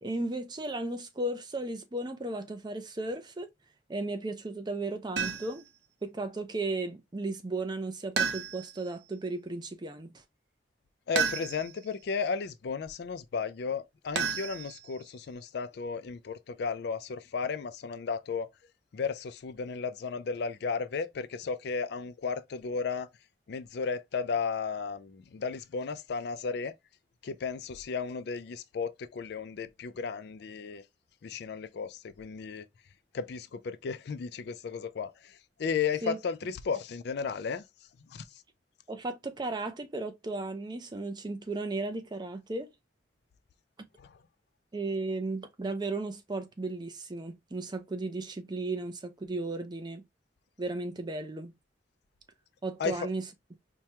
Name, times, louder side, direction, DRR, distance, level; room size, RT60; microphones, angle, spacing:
voice 1, 0.0-3.5 3.9-5.7 6.0-10.2 36.0-36.2 38.9-42.7 44.7-50.0 50.6-51.5 52.6-53.3, right 2 dB, 25° right, 0.5 m, -35 dB
sound 1, 5.2-5.7 8.2-8.9 11.1-11.9 14.1-15.0, right 6 dB, 75° right, 0.7 m, -32 dB
voice 2, 11.1-18.5 18.9-23.1 23.5-26.7 27.2-30.8 31.2-32.7 33.1-37.6 38.1-38.3 44.0-44.1 52.8-53.0, left 5 dB, 65° left, 0.4 m, -34 dB
4.5 x 2.2 x 2.8 m
head